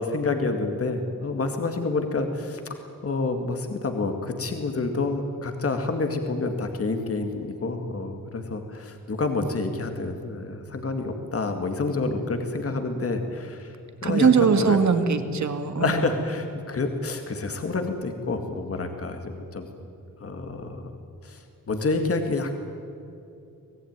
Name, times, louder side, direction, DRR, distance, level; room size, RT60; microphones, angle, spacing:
voice 1, 0.0-2.6 3.0-13.7 14.0-14.8 15.8-19.7 20.2-20.9 21.2-22.6, left 3 dB, 45° left, 6 dB, 2.1 m, -28 dB
voice 2, 14.0-16.2, right 6 dB, 60° right, 9 dB, 2.0 m, -21 dB
25.0 x 18.5 x 9.6 m, 2.7 s
wide cardioid pair, 155°, 33 cm